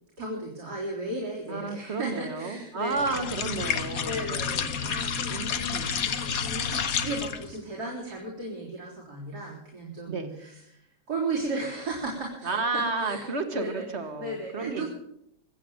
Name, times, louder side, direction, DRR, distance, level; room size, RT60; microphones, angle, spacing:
voice 1, 0.2-3.2 4.0-5.5 5.7-10.8 11.1-13.3 13.5-13.8 14.2-14.9, right 2 dB, 70° right, -4 dB, 4.2 m, -35 dB
voice 2, 1.5-4.4 5.3-6.0 10.1-10.3 12.4-14.9, right 3 dB, 40° right, 7 dB, 1.9 m, -32 dB
sound 1, 2.9-7.5, left 6 dB, 60° left, 1.4 m, -30 dB
23.5 x 8.3 x 7.2 m, 0.76 s
omnidirectional pair, 1.8 m